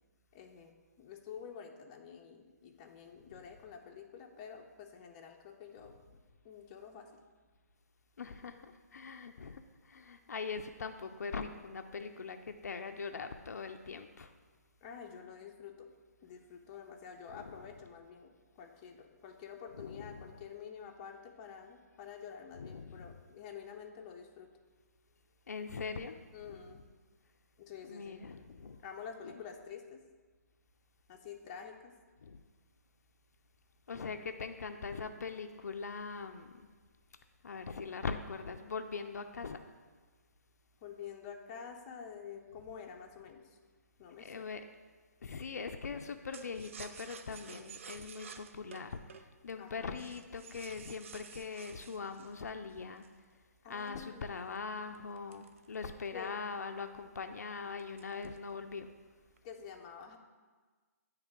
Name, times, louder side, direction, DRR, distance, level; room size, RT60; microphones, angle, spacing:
voice 1, 0.3-5.9 6.4-7.1 14.8-15.9 16.2-24.5 26.3-26.8 27.6-28.2 28.8-30.0 31.1-31.9 40.8-43.6 44.0-44.5 49.6-49.9 53.6-54.3 56.1-56.5 57.6-57.7 59.4-60.2, left 7 dB, 25° left, 2 dB, 0.5 m, -48 dB
voice 2, 8.2-14.3 17.3-17.6 19.7-20.3 22.6-23.2 25.5-26.2 26.4-26.6 27.8-28.8 29.2-29.4 32.2-32.4 33.9-36.7 37.4-39.6 44.1-44.6 45.2-53.1 53.7-58.9, left 5 dB, 75° left, 7 dB, 0.4 m, -42 dB
sound 1, 46.3-53.2 53.8-56.2 56.6-56.7 57.0-57.3 57.8-58.5 58.8-59.4, right 7 dB, 50° right, 0.4 m, -52 dB
9.2 x 3.2 x 3.5 m, 1.4 s
hypercardioid pair, 140°, 9 cm